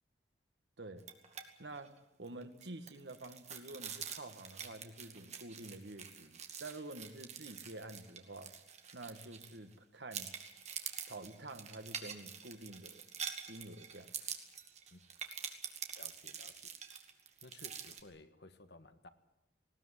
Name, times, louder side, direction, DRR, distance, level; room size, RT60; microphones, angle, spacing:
sound 1, 1.0-1.4 1.7-1.9 2.3-9.7 10.1-18.0, right 7 dB, 40° right, 2.3 m, -46 dB
voice 1, 1.6-8.5 8.9-10.4 11.1-13.0 13.5-14.2, right 2 dB, 80° right, 8 dB, 1.8 m, -49 dB
voice 2, 16.0-16.7 17.4-19.1, left 2 dB, 70° left, 9 dB, 1.7 m, -56 dB
19.5 x 18.0 x 9.9 m, 0.89 s
head